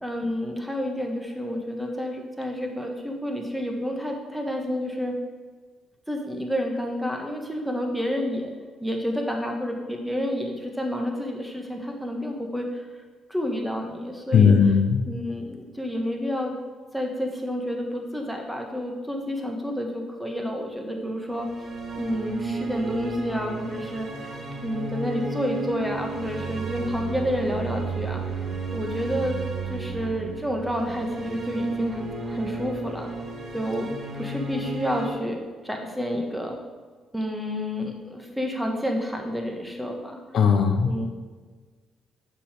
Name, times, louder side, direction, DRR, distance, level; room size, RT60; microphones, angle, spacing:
voice 1, 0.0-5.2 6.1-8.5 8.8-12.8 13.3-14.7 15.1-16.5 16.9-21.5 21.9-24.4 24.6-29.4 29.7-33.1 33.5-33.9 34.2-36.6 37.1-40.2 40.8-41.1, equal, 5° right, 2 dB, 1.3 m, -29 dB
voice 2, 14.3-14.9 40.3-41.1, left 6 dB, 65° left, 6 dB, 0.6 m, -18 dB
sound 1, 21.3-35.1, right 3 dB, 55° right, 1.1 m, -33 dB
6.7 x 4.7 x 4.9 m, 1.5 s
cardioid pair, 90°, 0 cm